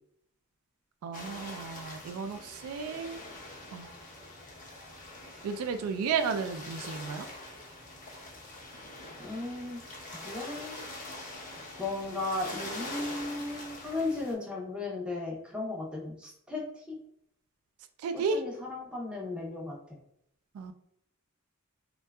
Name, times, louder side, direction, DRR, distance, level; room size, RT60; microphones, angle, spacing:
voice 1, 1.0-3.2 3.7-3.9 5.4-7.3 18.0-18.4 20.5-20.7, right 5 dB, 80° right, 13 dB, 0.3 m, -33 dB
sound 1, 1.1-14.3, left 2 dB, 40° left, 0.5 m, -44 dB
voice 2, 9.2-9.8 10.2-10.9 11.2-11.4 11.8-17.0 18.1-19.8, left 2 dB, 5° right, -2 dB, 0.5 m, -36 dB
2.6 x 2.2 x 2.2 m, 0.72 s
head